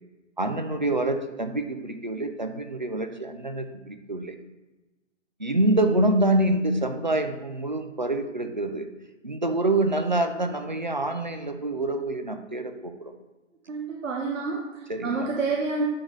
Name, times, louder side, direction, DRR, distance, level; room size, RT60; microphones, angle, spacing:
voice 1, 0.4-4.3 5.4-8.9 9.2-13.1 14.9-15.3, right 1 dB, 40° right, 7 dB, 0.4 m, -26 dB
voice 2, 13.7-15.8, right 3 dB, 80° right, 0 dB, 1.1 m, -28 dB
9.6 x 4.0 x 3.2 m, 1.1 s
hypercardioid pair, 175°, 38 cm